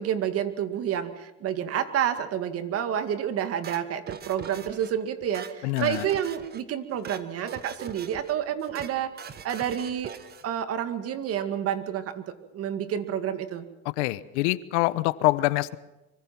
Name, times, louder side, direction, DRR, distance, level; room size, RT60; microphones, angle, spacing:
voice 1, 0.0-9.1 9.4-10.1 10.4-13.6, right 9 dB, 45° right, 10 dB, 2.3 m, -29 dB
sound 1, 3.6-4.9 5.2-6.6 6.9-7.2 7.5-8.3 8.6-8.9 9.2-10.5, right 7 dB, 30° right, 1.6 m, -42 dB
voice 2, 5.6-6.0 14.0-15.8, left 19 dB, 80° left, 17 dB, 1.1 m, -25 dB
24.5 x 24.5 x 6.0 m, 0.97 s
supercardioid pair, 130°, 34 cm